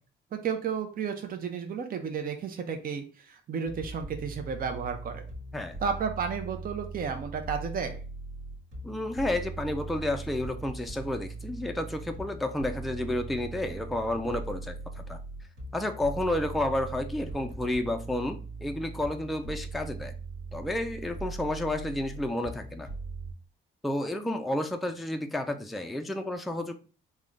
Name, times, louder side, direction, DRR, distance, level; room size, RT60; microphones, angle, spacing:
voice 1, 0.3-5.2 5.8-8.0, right 6 dB, 45° right, 5 dB, 0.6 m, -32 dB
sound 1, 3.7-23.3, right 3 dB, 65° right, 1.4 m, -40 dB
voice 2, 8.8-15.2 15.7-20.1 20.5-22.9 23.8-26.8, left 1 dB, ahead, 5 dB, 0.3 m, -31 dB
3.6 x 2.1 x 3.4 m, 0.37 s
cardioid pair, 90°, 20 cm